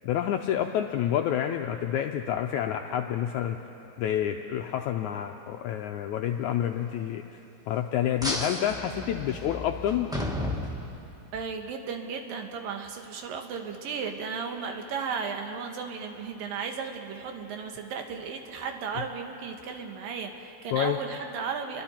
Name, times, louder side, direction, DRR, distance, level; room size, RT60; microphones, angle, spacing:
voice 1, 0.0-3.6 4.0-7.4 7.7-10.1 20.7-21.0, left 10 dB, 85° left, 4 dB, 1.7 m, -28 dB
sound 1, 8.2-11.4, left 1 dB, 5° right, 0.3 m, -33 dB
voice 2, 11.3-21.8, right 5 dB, 80° right, 4 dB, 3.0 m, -35 dB
28.5 x 23.5 x 4.4 m, 2.9 s
omnidirectional pair, 4.1 m